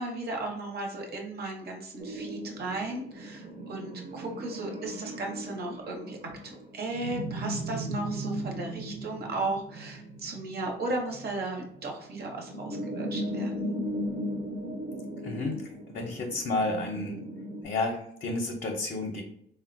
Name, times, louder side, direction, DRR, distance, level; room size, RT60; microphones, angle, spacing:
voice 1, 0.0-6.2 6.4-13.7, right 2 dB, 55° right, 1 dB, 0.8 m, -35 dB
sound 1, 2.0-17.6, right 1 dB, 30° right, 0.5 m, -37 dB
voice 2, 15.2-15.6 15.9-17.2 17.6-19.2, left 2 dB, 45° left, 1 dB, 0.5 m, -31 dB
3.7 x 2.1 x 2.5 m, 0.71 s
cardioid pair, 90°, 20 cm